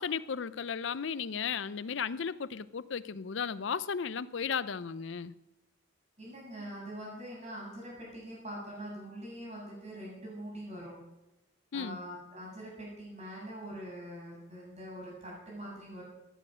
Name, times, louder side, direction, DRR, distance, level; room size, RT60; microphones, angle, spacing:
voice 1, 0.0-5.3 11.7-12.0, left 6 dB, 65° left, 16 dB, 0.5 m, -35 dB
voice 2, 6.2-10.9 11.7-16.0, equal, 35° right, -4 dB, 7.0 m, -43 dB
16.0 x 10.0 x 6.3 m, 1.0 s
head